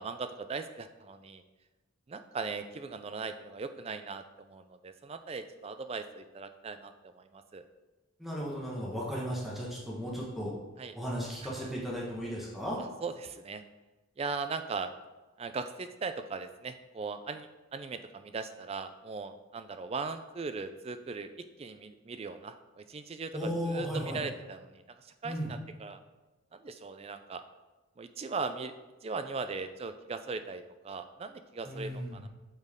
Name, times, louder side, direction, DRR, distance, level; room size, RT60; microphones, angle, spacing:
voice 1, 0.0-1.4 2.1-7.6 10.8-11.0 11.4-11.7 13.0-13.6 14.2-14.9 15.4-21.3 21.6-26.0 26.5-27.4 28.0-28.7 29.0-32.3, right 4 dB, 30° right, 10 dB, 0.3 m, -39 dB
voice 2, 8.2-10.5 10.9-12.8 23.3-24.2 25.2-25.5 31.6-32.1, equal, ahead, -5 dB, 1.1 m, -35 dB
8.0 x 4.5 x 3.5 m, 1.2 s
head